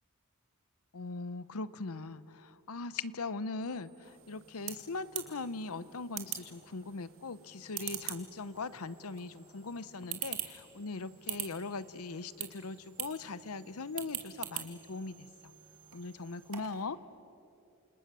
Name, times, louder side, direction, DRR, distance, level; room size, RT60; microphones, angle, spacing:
voice 1, 0.9-15.3 15.9-17.0, left 3 dB, 75° left, 16 dB, 0.8 m, -40 dB
sound 1, 3.6-16.5, right 4 dB, 25° right, 3.0 m, -62 dB
sound 2, 4.0-16.8, right 12 dB, 65° right, 2.5 m, -45 dB
29.0 x 27.0 x 6.8 m, 2.9 s
head